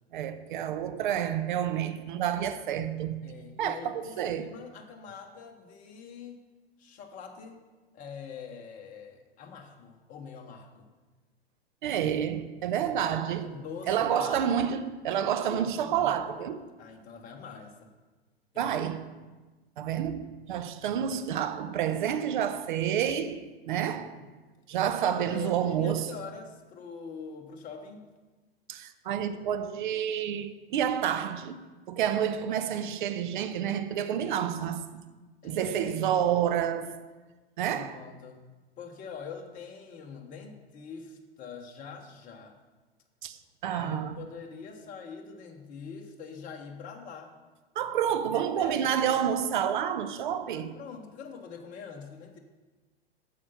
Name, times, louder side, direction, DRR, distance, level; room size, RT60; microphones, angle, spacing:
voice 1, 0.1-3.2 3.6-4.4 11.8-13.5 13.9-16.7 18.6-19.0 19.8-24.2 24.7-26.1 28.7-31.6 31.9-35.0 35.4-37.1 37.6-38.0 43.2-44.2 47.8-50.7, right 9 dB, 50° right, 0.8 m, -29 dB
voice 2, 3.2-6.4 6.8-7.6 7.9-10.9 13.0-14.5 15.5-16.5 16.8-17.9 18.5-18.8 23.8-24.3 25.0-28.0 35.4-36.0 37.7-38.4 38.8-42.6 43.7-47.3 48.3-49.2 50.5-52.4, left 6 dB, 25° left, 1.1 m, -44 dB
9.8 x 6.8 x 5.6 m
figure-of-eight pair, 95°, 31 cm